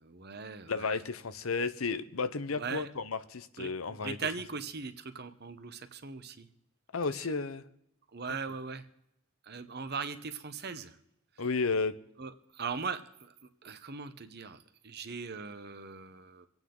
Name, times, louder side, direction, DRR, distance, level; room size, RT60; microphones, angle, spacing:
voice 1, 0.0-0.9 2.5-2.9 3.6-6.5 8.1-8.8 9.5-10.9 12.2-13.3 13.6-14.6 14.8-16.5, right 5 dB, 50° right, 10 dB, 1.1 m, -39 dB
voice 2, 0.7-4.2 6.9-7.6 11.4-11.9, left 4 dB, 85° left, 13 dB, 0.9 m, -32 dB
26.0 x 9.1 x 3.9 m, 0.78 s
head